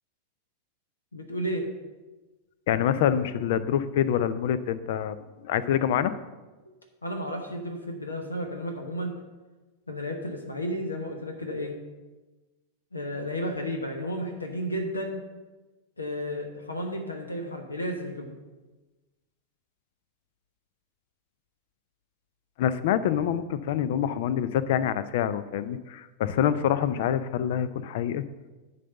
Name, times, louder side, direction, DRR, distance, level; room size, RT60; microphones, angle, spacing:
voice 1, 1.1-1.7 7.0-9.2 9.9-11.8 12.9-15.2 16.0-18.4, equal, 80° left, 4 dB, 1.0 m, -32 dB
voice 2, 2.7-6.1 22.6-28.2, left 9 dB, 55° left, 15 dB, 0.5 m, -26 dB
10.5 x 4.0 x 6.8 m, 1.2 s
figure-of-eight pair, 90°, 0 cm